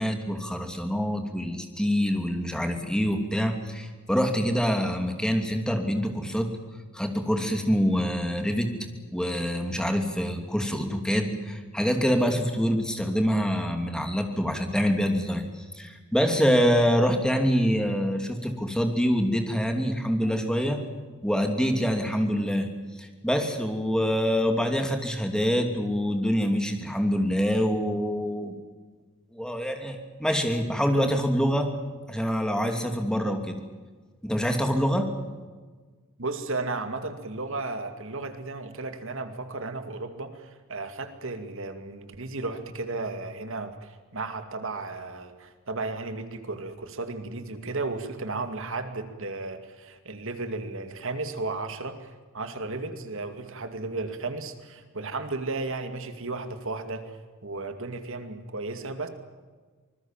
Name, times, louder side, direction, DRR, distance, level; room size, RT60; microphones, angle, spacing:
voice 1, 0.0-6.5 6.9-8.7 9.1-15.4 15.7-20.8 21.2-22.7 23.0-28.6 29.3-31.7 32.1-33.6 34.2-35.1, equal, 5° left, 4 dB, 2.8 m, -25 dB
voice 2, 36.2-52.1 52.3-57.2 57.4-59.1, right 3 dB, 65° right, 8 dB, 2.4 m, -34 dB
25.5 x 20.5 x 7.4 m, 1.4 s
head